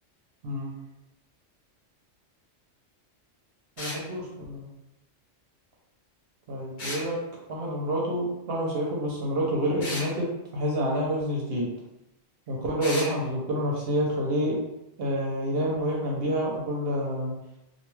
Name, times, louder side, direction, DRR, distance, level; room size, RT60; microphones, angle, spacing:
sound 1, 3.8-4.0 6.8-7.1 9.8-10.1 12.8-13.1, left 1 dB, 45° left, 0.8 m, -34 dB
voice 1, 3.8-4.7 6.5-7.2 7.5-10.3 10.5-11.7 12.5-14.6 15.0-17.3, equal, 60° right, -3 dB, 0.7 m, -28 dB
2.5 x 2.2 x 3.0 m, 0.91 s
omnidirectional pair, 1.3 m